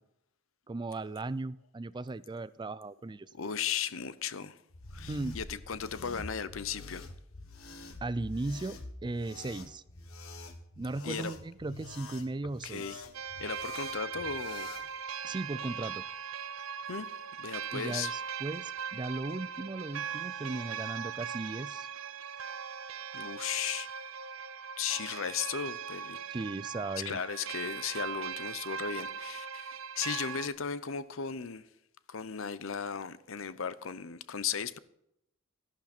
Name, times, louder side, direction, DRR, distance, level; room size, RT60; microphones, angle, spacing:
voice 1, 0.7-3.3 5.1-5.4 8.0-9.8 10.8-13.0 15.2-16.0 17.7-21.9 26.3-27.2, right 2 dB, 20° right, 0.4 m, -37 dB
voice 2, 3.3-4.6 4.9-7.1 11.0-11.3 12.6-13.0 13.4-14.7 16.9-17.1 17.4-18.1 23.1-23.9 24.8-26.2 27.0-31.7 32.1-34.8, left 7 dB, 70° left, 0.8 m, -36 dB
sound 1, 4.7-14.9, left 2 dB, 85° left, 1.5 m, -47 dB
sound 2, 13.1-30.5, right 7 dB, 80° right, 0.8 m, -40 dB
13.5 x 11.5 x 4.4 m
head